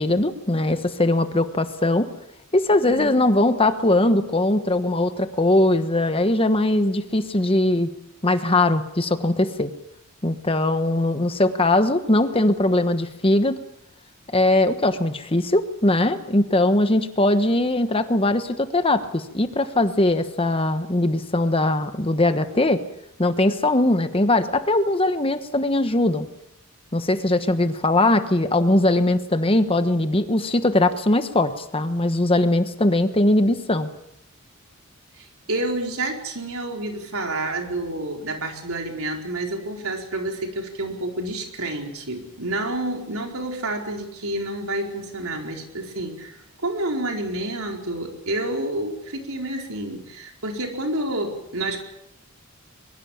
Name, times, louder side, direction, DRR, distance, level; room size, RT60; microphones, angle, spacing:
voice 1, 0.0-2.1 2.5-7.9 8.2-9.7 10.2-13.6 14.3-22.8 23.2-26.3 26.9-33.9, left 2 dB, 25° left, 9 dB, 1.2 m, -20 dB
voice 2, 2.8-3.1 35.2-51.8, right 1 dB, 70° right, 2 dB, 4.4 m, -29 dB
22.5 x 22.0 x 7.3 m, 0.80 s
head